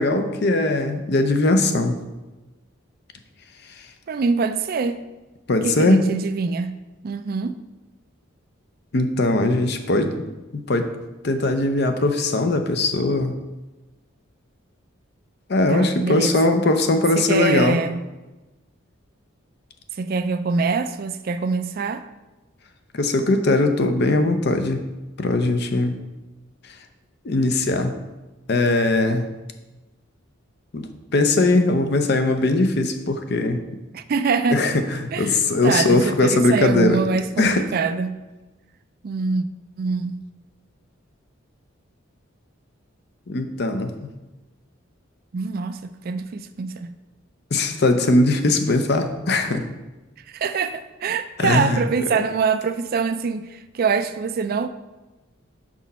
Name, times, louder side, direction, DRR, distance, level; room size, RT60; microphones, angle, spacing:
voice 1, 0.0-2.0 5.5-6.1 8.9-10.1 10.5-10.9 11.2-13.4 15.5-17.8 22.9-24.8 25.2-26.0 27.2-28.0 28.5-29.3 30.7-33.6 34.5-37.0 37.4-37.6 43.3-43.9 47.5-49.6 51.4-51.8 52.1-52.2, left 2 dB, 55° left, 0.6 m, -20 dB
voice 2, 4.1-5.0 5.6-6.8 7.0-7.6 15.7-16.4 17.2-18.1 20.0-22.0 33.9-34.8 35.1-35.4 35.6-38.2 39.0-39.5 39.8-40.2 45.3-46.9 50.3-54.7, right 4 dB, 45° right, 0.3 m, -24 dB
6.1 x 5.5 x 4.2 m
head